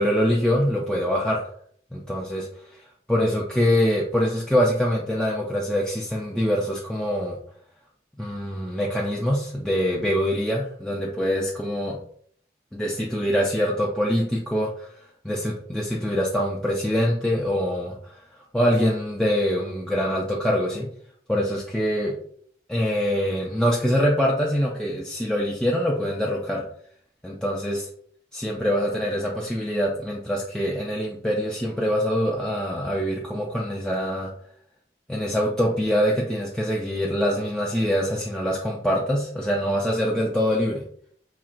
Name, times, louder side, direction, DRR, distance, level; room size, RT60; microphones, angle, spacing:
voice 1, 0.0-1.4 1.9-2.5 2.7-7.4 8.2-12.0 12.7-14.9 15.2-18.2 18.5-20.9 21.3-22.2 22.7-26.6 27.2-27.9 28.3-34.3 35.1-40.8, equal, 5° left, -4 dB, 0.4 m, -24 dB
4.3 x 3.1 x 2.4 m, 0.62 s
head